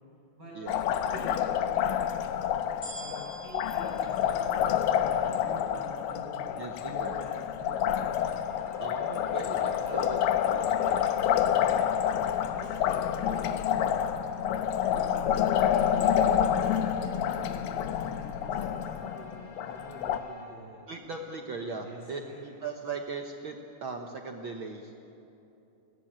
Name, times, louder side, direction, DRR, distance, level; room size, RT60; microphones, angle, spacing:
Liquid, 0.7-20.2, left 9 dB, 85° left, 2.5 m, -28 dB
voice 1, 1.0-2.1 2.9-8.2 9.8-10.0 10.7-11.8 12.5-13.5 14.8-16.9 17.4-20.8 21.7-22.4, right 2 dB, 30° right, -4 dB, 7.1 m, -47 dB
sound 1, 2.8-5.2 5.9-6.0, right 1 dB, 70° left, 7.7 m, -46 dB
voice 2, 6.6-7.1 8.8-10.2 10.5-10.6 20.9-23.6 23.8-24.9, right 4 dB, 80° right, 3 dB, 1.1 m, -38 dB
sound 2, 6.9-20.4, left 1 dB, 50° left, 5.0 m, -54 dB
22.0 x 17.5 x 8.8 m, 2.9 s
omnidirectional pair, 3.9 m